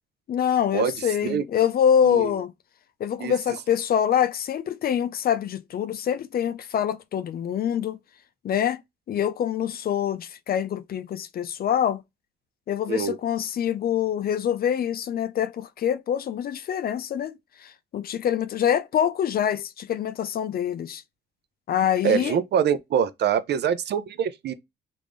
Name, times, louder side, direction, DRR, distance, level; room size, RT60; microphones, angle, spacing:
voice 1, 0.3-2.5 3.0-8.0 8.4-8.8 9.1-12.0 12.7-17.3 17.6-21.0 21.7-22.4, left 9 dB, 50° left, 0.4 m, -25 dB
voice 2, 22.0-24.5, right 8 dB, 60° right, 0.5 m, -24 dB
3.5 x 2.5 x 3.1 m
cardioid pair, 90°, 20 cm